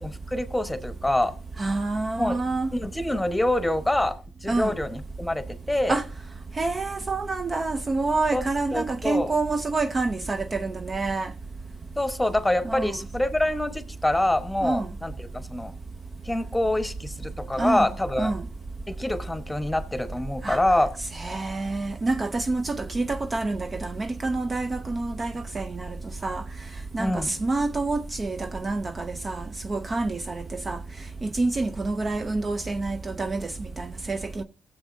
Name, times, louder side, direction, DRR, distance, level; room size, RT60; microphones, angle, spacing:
voice 1, 0.0-1.3 2.2-2.4 2.7-6.0 8.3-9.3 12.0-15.7 16.2-18.3 18.9-20.9 27.0-27.3, left 1 dB, 5° left, 1.1 m, -26 dB
voice 2, 1.6-2.7 4.5-4.8 5.9-6.1 6.5-11.3 12.6-13.0 14.6-14.9 17.5-17.9 18.2-18.5 20.4-20.6 21.1-26.0 26.2-26.4 26.9-34.4, right 3 dB, 30° right, 0.5 m, -28 dB
16.5 x 7.4 x 2.6 m
cardioid pair, 90°, 0 cm